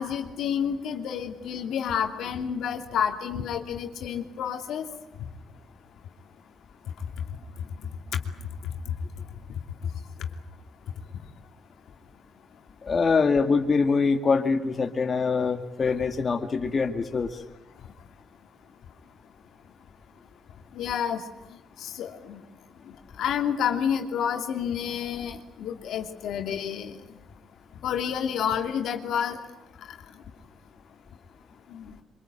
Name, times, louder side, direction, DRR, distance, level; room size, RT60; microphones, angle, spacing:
voice 1, 0.0-4.9 20.7-21.2 21.8-22.4 22.8-27.0 27.8-29.4 29.9-30.0 31.7-32.0, left 8 dB, 80° left, 4 dB, 2.9 m, -29 dB
voice 2, 12.8-17.4, left 4 dB, 40° left, 4 dB, 2.1 m, -24 dB
25.0 x 24.0 x 9.2 m, 0.91 s
cardioid pair, 90°, 0 cm